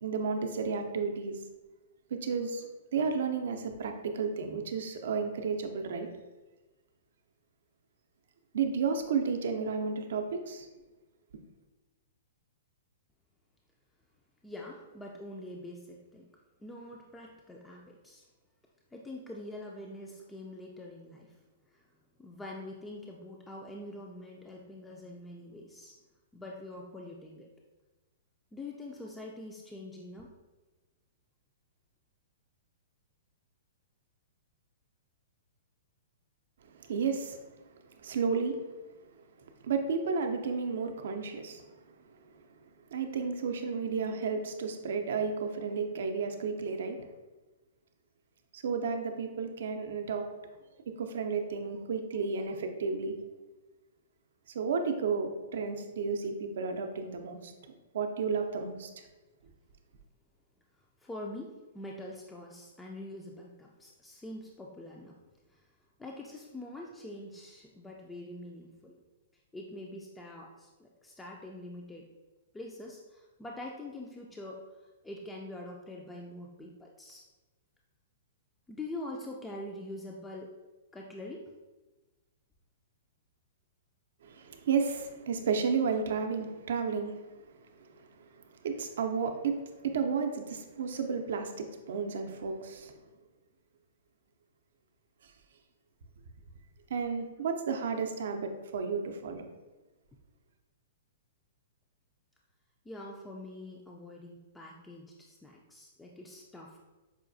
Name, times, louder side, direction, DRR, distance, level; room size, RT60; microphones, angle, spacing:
voice 1, 0.0-1.4 2.1-6.1 8.5-10.7 36.7-37.4 38.0-38.6 39.6-41.7 42.9-47.0 48.5-50.3 50.9-53.2 54.5-57.5 57.9-58.9 84.2-87.1 88.6-92.9 96.9-99.5, right 5 dB, 70° right, 5 dB, 0.4 m, -32 dB
voice 2, 14.4-16.3 16.6-18.2 18.9-21.4 21.7-21.9 22.2-25.9 26.3-27.5 28.5-30.3 58.4-58.5 61.0-65.2 65.5-65.7 66.0-69.0 69.5-72.1 72.5-77.2 78.7-80.5 80.9-81.5 97.4-97.5 102.9-106.8, left 1 dB, 10° left, -1 dB, 0.3 m, -44 dB
4.9 x 2.3 x 2.5 m, 1.2 s
hypercardioid pair, 130°, 0 cm